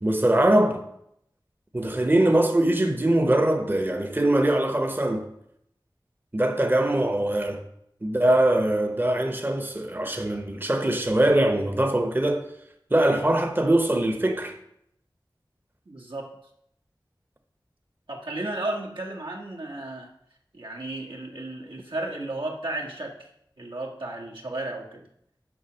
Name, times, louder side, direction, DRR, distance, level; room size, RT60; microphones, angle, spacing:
voice 1, 0.0-0.8 1.7-5.3 6.3-7.6 8.0-12.5 12.9-14.6, right 1 dB, 25° right, 0.8 m, -22 dB
voice 2, 15.9-16.3 18.1-20.1 20.5-23.3 23.6-25.1, right 2 dB, 85° right, 1.8 m, -34 dB
7.1 x 5.8 x 6.3 m
wide cardioid pair, 55°, 8 cm